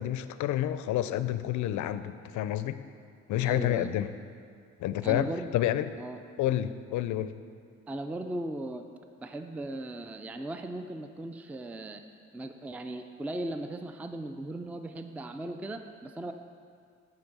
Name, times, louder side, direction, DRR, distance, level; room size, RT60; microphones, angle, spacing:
voice 1, 0.0-2.8 3.3-4.1 4.8-5.9 6.4-7.3, left 12 dB, 75° left, 13 dB, 0.4 m, -29 dB
voice 2, 3.4-3.9 5.0-5.5 6.0-6.2 7.9-8.8 9.2-12.0 12.3-16.3, right 1 dB, 5° right, 7 dB, 0.3 m, -37 dB
9.4 x 3.9 x 6.1 m, 2.2 s
cardioid pair, 90°, 30 cm